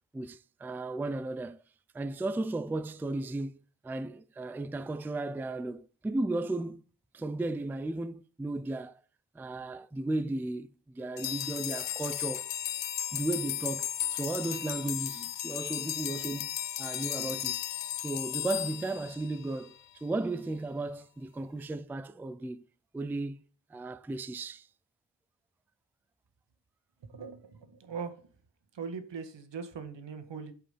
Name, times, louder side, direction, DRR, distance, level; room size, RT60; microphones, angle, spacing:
voice 1, 0.1-1.6 1.9-3.6 3.8-6.8 7.1-9.0 9.3-12.5 13.1-16.5 16.8-17.6 18.0-19.8 20.0-22.6 22.9-23.4 23.7-24.7, right 2 dB, 5° right, 0.3 m, -35 dB
sound 1, 11.2-19.7, left 11 dB, 85° left, 0.7 m, -35 dB
voice 2, 27.0-28.2 28.7-30.5, right 5 dB, 85° right, 1.8 m, -40 dB
8.5 x 5.7 x 5.5 m
wide cardioid pair, 115°, 42 cm